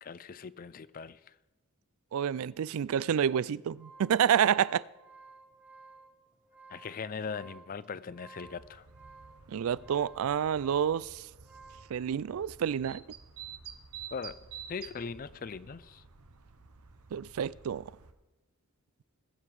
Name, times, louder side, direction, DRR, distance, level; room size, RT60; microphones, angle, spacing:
voice 1, 0.0-1.2 6.7-8.8 14.1-14.4 14.7-16.0, left 5 dB, 40° left, 0.4 m, -40 dB
voice 2, 2.1-4.8 9.5-11.2 11.9-13.0 17.1-17.9, right 8 dB, 70° right, 0.3 m, -28 dB
sound 1, 3.6-12.0, right 4 dB, 5° right, 1.2 m, -55 dB
Great Tit, 8.4-18.1, right 7 dB, 85° right, 1.0 m, -50 dB
20.5 x 7.2 x 4.8 m
head